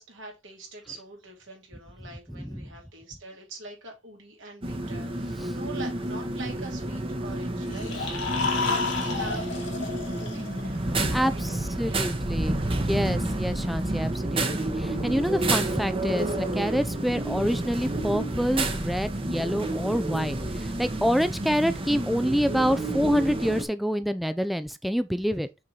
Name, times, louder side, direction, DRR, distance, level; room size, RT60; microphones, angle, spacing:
voice 1, 0.0-8.2 8.6-9.5 10.2-10.6 11.3-12.0, right 2 dB, 75° right, 2.7 m, -43 dB
voice 2, 2.3-2.7 5.4-5.5 11.1-25.5, equal, ahead, 0.4 m, -27 dB
sound 1, 4.6-23.7, right 1 dB, 30° right, 0.9 m, -30 dB
sound 2, 7.6-10.8, left 4 dB, 90° left, 2.4 m, -30 dB
6.2 x 3.8 x 4.2 m
head